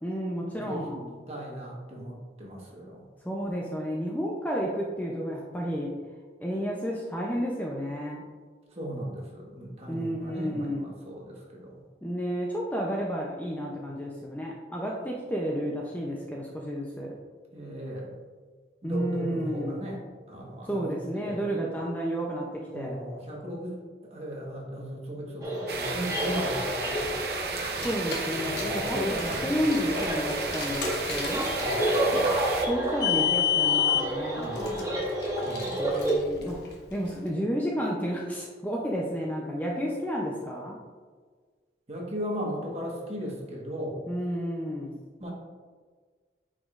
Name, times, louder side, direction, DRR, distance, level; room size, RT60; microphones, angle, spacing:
voice 1, 0.0-1.1 3.2-5.9 6.4-8.2 9.9-10.9 12.0-17.1 18.8-19.8 20.7-23.0 27.8-31.5 32.7-34.5 35.8-36.6 36.9-40.8 44.1-45.0, equal, 10° left, -2 dB, 0.5 m, -31 dB
voice 2, 0.5-3.1 8.7-11.8 17.5-18.1 18.8-20.0 20.3-21.5 22.7-28.1 28.4-29.5 31.6-32.4 34.4-35.0 35.4-36.0 41.9-44.0 45.2-45.3, equal, 35° right, -2 dB, 1.3 m, -37 dB
sound 1, 25.4-36.2, right 1 dB, 20° right, 1.2 m, -30 dB
sound 2, 25.7-32.7, right 4 dB, 60° right, 0.7 m, -34 dB
Car, 27.6-37.1, left 8 dB, 70° left, 1.3 m, -31 dB
9.2 x 5.0 x 2.5 m, 1.5 s
head